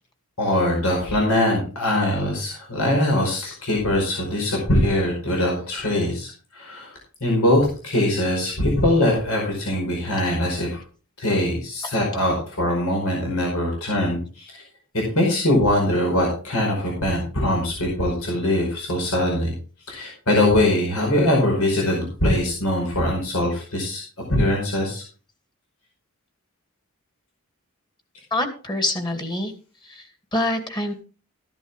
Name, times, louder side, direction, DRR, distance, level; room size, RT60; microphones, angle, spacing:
voice 1, 0.4-6.9 7.2-10.8 11.2-14.6 15.1-19.5 19.9-24.0 24.3-25.0, left 1 dB, 75° left, -1 dB, 5.1 m, -22 dB
voice 2, 28.3-29.5 29.8-30.9, left 1 dB, 20° left, 6 dB, 2.3 m, -26 dB
14.0 x 11.0 x 3.5 m, 0.38 s
head